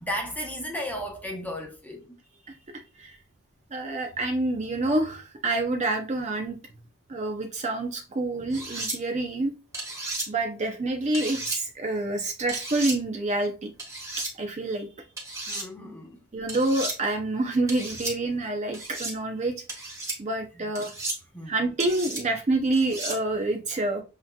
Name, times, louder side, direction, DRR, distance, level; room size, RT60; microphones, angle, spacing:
voice 1, 0.0-2.2 8.5-8.6 15.5-16.2 20.6-20.7 21.3-21.5, equal, 5° left, 0.8 m, -34 dB
voice 2, 3.7-6.6 7.1-9.5 10.3-13.7 14.2-14.9 16.3-19.5 20.2-20.9 21.5-24.0, right 2 dB, 30° right, 0.5 m, -27 dB
sound 1, 8.5-9.0 9.7-10.3 11.1-11.6 12.5-13.0 13.8-14.3 15.2-15.7 16.5-17.0 17.7-18.1 18.7-19.1 19.7-20.2 20.7-21.2 21.8-22.2 22.7-23.2, right 2 dB, 15° right, 1.6 m, -33 dB
7.8 x 2.8 x 2.2 m
head